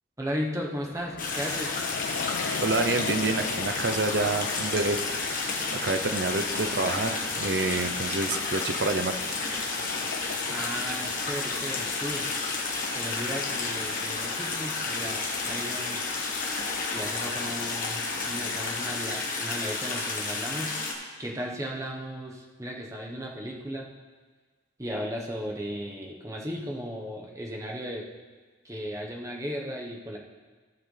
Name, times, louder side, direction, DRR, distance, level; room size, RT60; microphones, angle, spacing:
voice 1, 0.2-1.7 10.5-12.3 12.9-16.0 16.9-20.8 21.2-23.9 24.8-28.0 28.6-30.2, equal, 15° right, -1 dB, 1.0 m, -35 dB
Train, 0.8-19.7, left 6 dB, 70° left, 0.4 m, -39 dB
sound 1, 1.2-20.9, left 3 dB, 45° left, 1.3 m, -31 dB
voice 2, 2.6-9.4, right 3 dB, 60° right, 8 dB, 0.6 m, -28 dB
16.0 x 5.9 x 3.3 m, 1.4 s
head